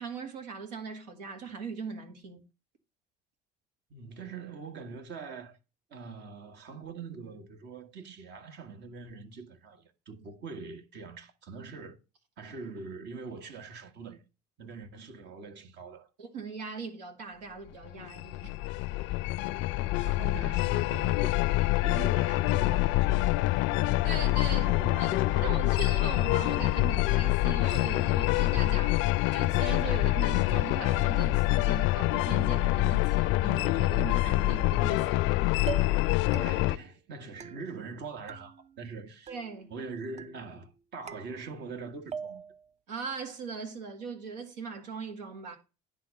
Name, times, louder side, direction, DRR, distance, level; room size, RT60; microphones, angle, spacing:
voice 1, 0.0-2.5 16.2-18.6 24.0-24.7 25.0-25.2 25.4-29.0 29.3-35.4 39.3-39.7 42.9-45.6, right 5 dB, 85° right, 1.9 m, -39 dB
voice 2, 3.9-5.6 5.9-12.0 12.4-14.2 14.6-16.1 19.8-21.4 21.8-23.2 24.6-25.6 36.4-39.4 39.7-42.5, right 4 dB, 55° right, 1.6 m, -43 dB
sound 1, 17.8-36.8, left 18 dB, 65° left, 0.5 m, -26 dB
sound 2, 35.0-35.3 35.7-36.1 36.3-36.9 37.4-38.0 38.3-39.0 39.3-39.8 40.2-40.7 41.1-41.8 42.1-42.7, right 9 dB, 35° right, 0.6 m, -43 dB
10.0 x 3.7 x 6.5 m
hypercardioid pair, 70°, 21 cm